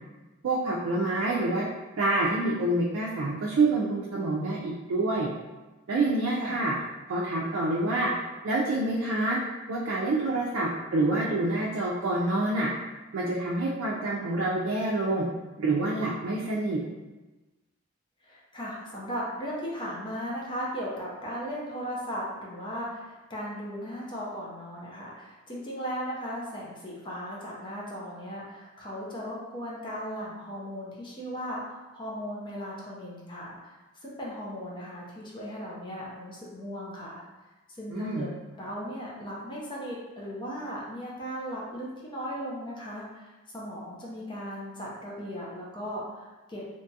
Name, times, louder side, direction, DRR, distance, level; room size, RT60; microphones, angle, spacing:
voice 1, 0.4-1.6 2.0-5.3 5.9-6.7 7.1-8.1 8.4-9.4 9.7-12.7 13.1-15.3 15.6-16.8 37.9-38.3, right 2 dB, 80° right, -5 dB, 0.4 m, -27 dB
voice 2, 18.2-37.2 37.7-46.7, equal, 25° left, -5 dB, 0.5 m, -37 dB
2.8 x 2.3 x 2.7 m, 1.2 s
head